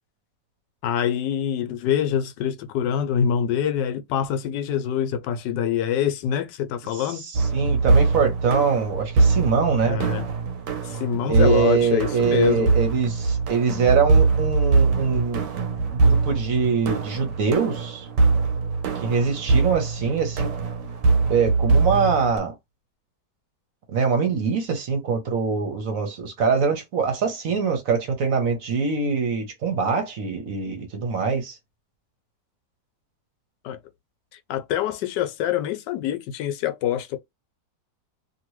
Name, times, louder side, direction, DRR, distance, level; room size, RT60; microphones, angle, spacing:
voice 1, 0.8-7.2 9.9-10.3 10.8-12.7 33.6-33.8 34.5-37.2, left 9 dB, 80° left, 1.2 m, -25 dB
voice 2, 7.2-10.0 11.3-15.5 15.9-18.1 18.9-20.5 21.3-22.5 23.9-31.6, right 5 dB, 60° right, 1.1 m, -23 dB
sound 1, 7.3-22.4, right 4 dB, 85° right, 1.3 m, -22 dB
2.9 x 2.6 x 3.0 m
omnidirectional pair, 1.9 m